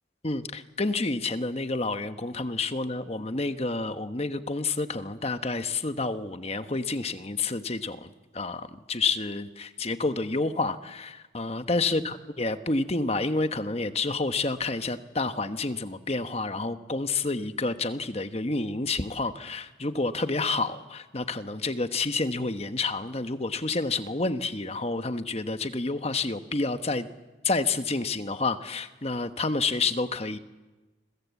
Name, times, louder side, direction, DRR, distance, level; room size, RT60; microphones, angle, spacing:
voice 1, 0.2-27.1 27.4-30.4, left 3 dB, 30° left, 9 dB, 1.2 m, -29 dB
29.0 x 22.0 x 8.3 m, 1.2 s
head